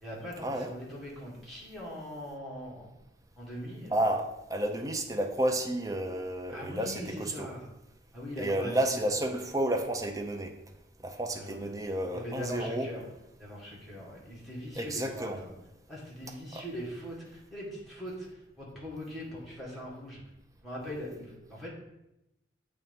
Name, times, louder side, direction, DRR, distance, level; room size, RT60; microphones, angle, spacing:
voice 1, 0.0-2.9 3.4-3.9 6.5-7.7 8.1-9.0 11.3-11.7 12.1-13.1 13.4-15.5 15.9-20.2 20.6-21.7, equal, ahead, -6 dB, 1.8 m, -41 dB
voice 2, 3.9-7.5 8.4-10.5 11.0-12.9 14.8-15.4 16.5-16.6, right 1 dB, 20° right, 4 dB, 0.5 m, -31 dB
7.4 x 3.4 x 5.3 m, 0.89 s
head